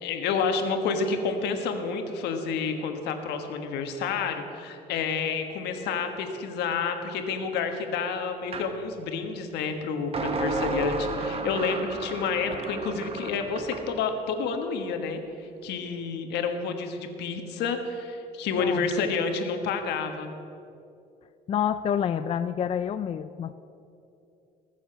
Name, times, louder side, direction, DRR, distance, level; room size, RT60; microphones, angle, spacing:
voice 1, 0.0-15.2 15.6-20.3, left 5 dB, 80° left, 6 dB, 1.4 m, -29 dB
sound 1, 8.5-8.7 10.1-13.9, right 3 dB, 35° right, 1.1 m, -32 dB
voice 2, 21.5-23.5, left 8 dB, 35° left, 12 dB, 0.4 m, -28 dB
20.5 x 7.2 x 5.6 m, 2.7 s
cardioid pair, 110°, 17 cm